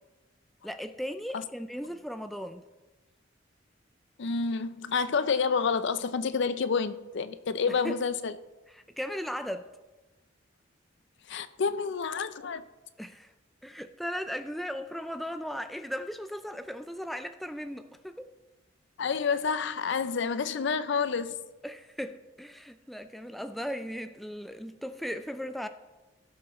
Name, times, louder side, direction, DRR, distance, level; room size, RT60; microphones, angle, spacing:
voice 1, 0.6-2.6 7.7-8.0 8.7-9.7 13.0-13.3 13.6-18.3 21.6-25.7, equal, ahead, 0.4 m, -37 dB
voice 2, 4.2-8.3 11.3-12.6 19.0-21.4, left 5 dB, 65° left, 0.5 m, -29 dB
16.5 x 7.1 x 3.1 m
head